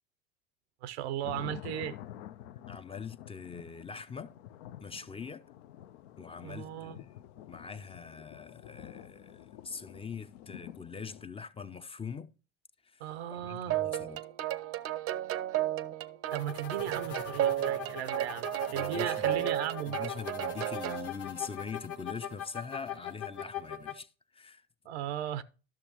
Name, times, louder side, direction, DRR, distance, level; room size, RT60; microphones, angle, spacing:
voice 1, 0.8-2.0 6.4-7.0 13.0-13.9 16.3-20.0 24.8-25.4, right 11 dB, 85° right, 0.6 m, -37 dB
sound 1, 1.2-11.2, left 12 dB, 80° left, 0.5 m, -49 dB
voice 2, 2.7-4.4 4.8-5.4 6.2-7.1 7.5-12.3 12.8-14.2 18.7-19.5 19.9-24.6, left 5 dB, 20° left, 0.4 m, -43 dB
sound 2, 13.7-21.1, right 12 dB, 45° right, 0.5 m, -33 dB
sound 3, 16.3-23.9, left 9 dB, 50° left, 1.0 m, -41 dB
12.0 x 6.3 x 2.9 m
hypercardioid pair, 75°, 32 cm